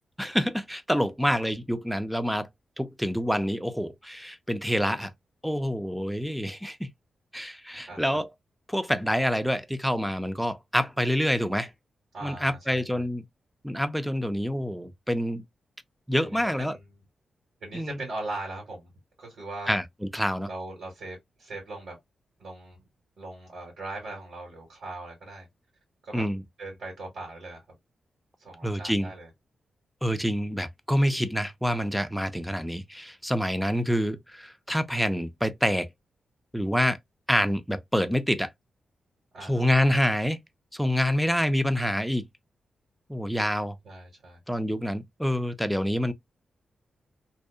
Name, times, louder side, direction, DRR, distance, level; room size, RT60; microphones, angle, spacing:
voice 1, 0.2-2.5 2.8-5.1 5.4-6.9 7.3-8.3 8.7-11.7 12.2-13.2 13.6-15.4 16.1-16.8 17.7-18.0 19.7-19.8 20.1-20.5 26.1-26.4 28.6-29.1 30.0-35.9 36.5-37.0 37.3-38.5 39.5-40.4 40.7-42.3 43.1-43.8 44.5-46.1, equal, ahead, 0.4 m, -27 dB
voice 2, 7.8-8.2 12.1-13.1 16.2-17.0 17.6-18.9 19.2-19.8 20.5-22.0 22.4-22.8 23.2-25.5 26.0-26.2 26.6-27.6 28.4-29.3 39.3-40.0 43.8-44.4, right 2 dB, 70° right, 1.5 m, -40 dB
2.7 x 2.0 x 2.4 m
cardioid pair, 80°, 0 cm